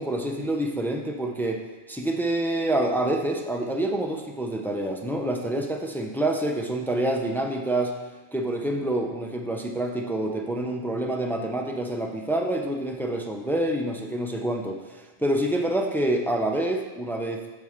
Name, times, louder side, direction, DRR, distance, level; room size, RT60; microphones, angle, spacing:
voice 1, 0.0-1.6 1.9-7.9 8.3-17.4, right 1 dB, 5° left, 2 dB, 0.5 m, -27 dB
13.0 x 4.6 x 3.6 m, 1.2 s
omnidirectional pair, 1.0 m